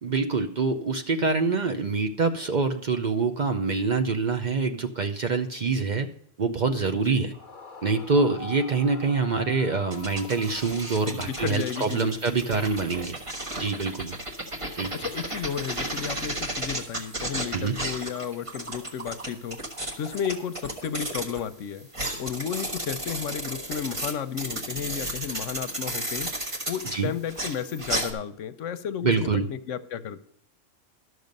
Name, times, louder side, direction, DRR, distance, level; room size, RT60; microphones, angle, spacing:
voice 1, 0.0-6.1 6.4-7.3 7.8-13.2 13.6-14.2 14.8-15.0 17.5-17.7 26.9-27.1 29.0-29.5, right 4 dB, 45° right, 7 dB, 0.6 m, -25 dB
voice 2, 7.1-7.4 11.1-12.2 14.9-19.6 20.0-21.9 22.2-26.3 26.7-30.2, left 8 dB, 80° left, 13 dB, 1.0 m, -33 dB
Yell / Screaming, 7.3-12.2, left 4 dB, 45° left, 1.0 m, -44 dB
sound 1, 9.9-21.5 21.8-28.1, right 1 dB, 25° right, 1.3 m, -34 dB
12.0 x 6.5 x 5.2 m, 0.67 s
omnidirectional pair, 1.3 m